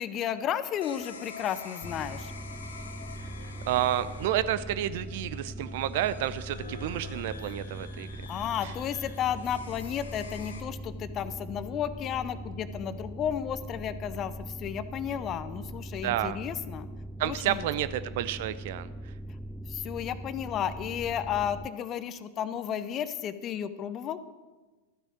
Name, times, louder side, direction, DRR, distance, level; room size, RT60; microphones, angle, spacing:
voice 1, 0.0-2.3 8.3-16.9 17.2-17.6 19.7-24.2, left 9 dB, 30° left, 13 dB, 0.7 m, -33 dB
sound 1, 0.8-10.6, left 4 dB, 70° left, 1.6 m, -46 dB
sound 2, 1.8-21.7, right 1 dB, ahead, 0.3 m, -41 dB
voice 2, 3.7-8.1 16.0-16.4 17.2-19.1, right 12 dB, 50° right, 15 dB, 0.6 m, -30 dB
13.5 x 9.8 x 6.3 m, 1.3 s
figure-of-eight pair, 90°, 0 cm